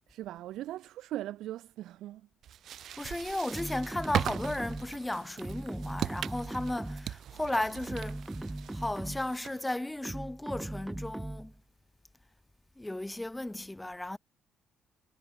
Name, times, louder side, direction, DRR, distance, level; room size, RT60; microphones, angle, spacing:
voice 1, 0.1-2.3, right 14 dB, 85° right, 1.8 m, -39 dB
sound 1, 2.4-9.7, right 10 dB, 60° right, 0.7 m, -39 dB
voice 2, 3.0-8.2 8.7-11.5 12.8-14.2, left 1 dB, 10° left, 4.4 m, -35 dB
sound 2, 3.5-5.0 5.4-7.2 7.7-9.4 10.0-11.6, right 1 dB, 10° right, 1.1 m, -39 dB
cardioid pair, 130°, 0 cm